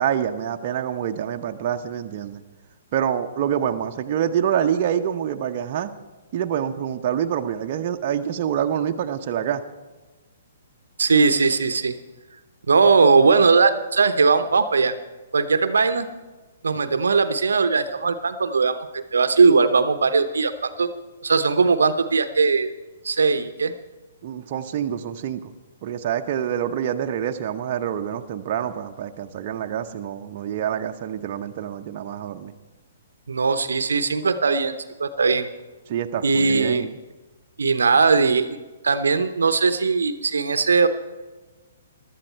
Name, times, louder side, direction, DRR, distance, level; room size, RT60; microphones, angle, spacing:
voice 1, 0.0-2.4 2.9-5.9 6.3-9.6 24.2-25.5 25.8-32.5 35.9-36.9, right 9 dB, 45° right, 5 dB, 0.8 m, -26 dB
voice 2, 11.0-11.9 12.7-14.9 15.3-16.1 16.6-20.9 21.2-22.7 23.0-23.7 33.3-34.7 35.0-35.5 36.2-36.9 37.6-38.6 38.8-40.9, right 4 dB, 75° right, 11 dB, 0.8 m, -19 dB
16.0 x 12.0 x 4.5 m, 1.2 s
figure-of-eight pair, 125°, 0 cm